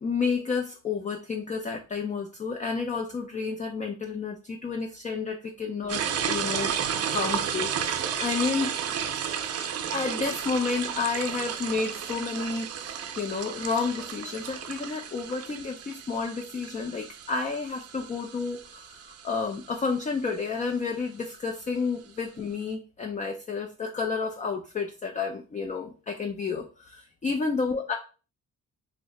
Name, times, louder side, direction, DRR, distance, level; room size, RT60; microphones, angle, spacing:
voice 1, 0.0-6.0 6.3-6.7 7.1-8.7 9.9-27.9, left 4 dB, 25° left, 3 dB, 0.4 m, -31 dB
sound 1, 5.9-20.3, right 8 dB, 55° right, 0.5 m, -33 dB
2.9 x 2.0 x 3.9 m, 0.34 s
cardioid pair, 90°, 30 cm